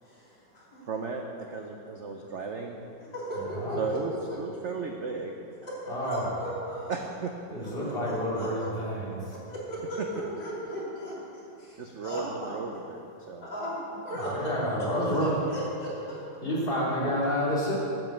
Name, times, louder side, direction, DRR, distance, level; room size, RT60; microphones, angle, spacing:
voice 1, 0.0-0.9 3.0-4.2 5.6-6.9 7.6-8.7 9.3-12.5 13.4-13.8 14.0-14.5 14.8-14.9 15.2-16.2, equal, 75° left, -7 dB, 3.7 m, -37 dB
voice 2, 0.9-2.8 3.8-5.4 6.9-7.3 10.0-10.1 11.8-13.5, right 4 dB, 65° right, 3 dB, 0.7 m, -35 dB
voice 3, 5.9-6.3 7.5-9.2 14.2-15.3 16.4-17.7, equal, 30° left, -7 dB, 3.0 m, -29 dB
9.1 x 7.9 x 7.5 m, 2.7 s
omnidirectional pair, 2.0 m